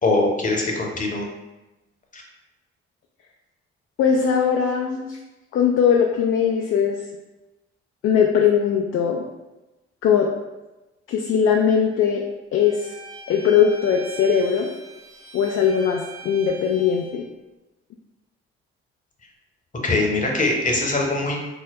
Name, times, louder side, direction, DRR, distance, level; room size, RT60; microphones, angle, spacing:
voice 1, 0.0-1.3 2.1-2.2 19.8-21.4, left 2 dB, 25° left, 0 dB, 0.8 m, -22 dB
voice 2, 4.0-5.2 5.5-7.0 8.0-9.2 10.0-10.3 11.1-12.2 12.5-12.9 13.3-14.7 15.3-17.2, left 7 dB, 45° left, 0 dB, 0.4 m, -20 dB
Bowed string instrument, 12.6-17.2, right 3 dB, 40° right, 1.2 m, -42 dB
4.6 x 2.0 x 2.2 m, 1.0 s
figure-of-eight pair, 40°, 31 cm